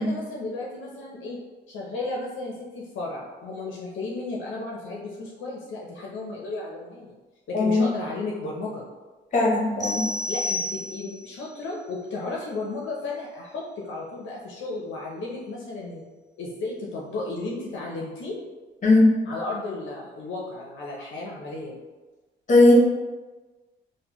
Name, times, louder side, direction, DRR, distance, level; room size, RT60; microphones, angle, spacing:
voice 1, 0.0-1.4 1.7-7.1 7.5-8.8 10.3-16.1 16.4-18.4 19.3-21.7, left 3 dB, 70° left, -3 dB, 0.6 m, -34 dB
voice 2, 7.5-7.8 9.3-10.1 18.8-19.1 22.5-22.7, left 2 dB, 40° left, -1 dB, 0.9 m, -18 dB
sound 1, 9.8-11.3, left 1 dB, 20° right, 0.4 m, -30 dB
3.6 x 2.1 x 2.9 m, 1.3 s
cardioid pair, 90°, 20 cm